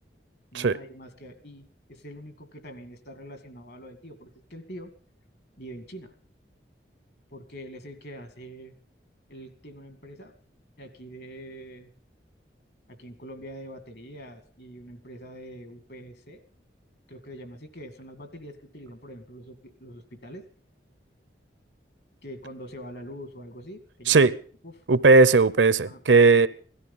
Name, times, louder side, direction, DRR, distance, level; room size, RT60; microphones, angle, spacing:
voice 1, 0.5-4.9 5.6-6.1 7.3-8.7 9.3-10.3 10.8-11.9 12.9-16.4 17.1-20.4 22.2-24.3 24.6-24.8 25.8-26.0, equal, 60° left, 2.2 m, -44 dB
voice 2, 24.9-26.5, right 3 dB, 85° right, 0.7 m, -17 dB
16.5 x 13.5 x 5.6 m
head